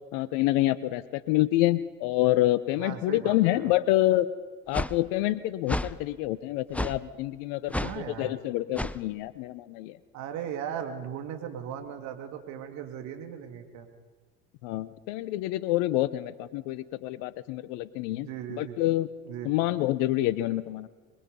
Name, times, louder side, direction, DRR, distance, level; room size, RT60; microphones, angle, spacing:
voice 1, 0.1-4.3 4.7-10.0 14.6-19.1 19.4-20.9, left 16 dB, 70° left, 16 dB, 0.9 m, -27 dB
voice 2, 2.8-3.7 7.6-8.4 10.1-13.9 18.1-18.8 19.3-19.5, right 9 dB, 65° right, 5 dB, 2.7 m, -38 dB
sound 1, 4.7-4.9 5.7-5.9 6.7-7.0 7.7-8.0 8.7-9.0, left 1 dB, 5° left, 0.8 m, -30 dB
26.0 x 22.5 x 5.5 m, 1.4 s
hypercardioid pair, 70°, 31 cm